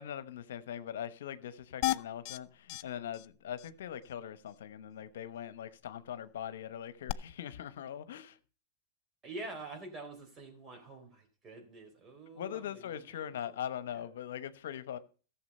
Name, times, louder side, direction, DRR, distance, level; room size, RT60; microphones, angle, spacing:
voice 1, 0.0-8.4 12.3-15.0, left 10 dB, 80° left, 0.9 m, -41 dB
sound 1, 1.8-2.4 2.7-2.8 3.1-3.3 3.6-3.7 7.1-7.2, left 17 dB, 55° left, 0.5 m, -32 dB
voice 2, 9.2-13.0, right 2 dB, 30° right, 3.8 m, -46 dB
14.5 x 7.1 x 5.4 m
hypercardioid pair, 115°, 0 cm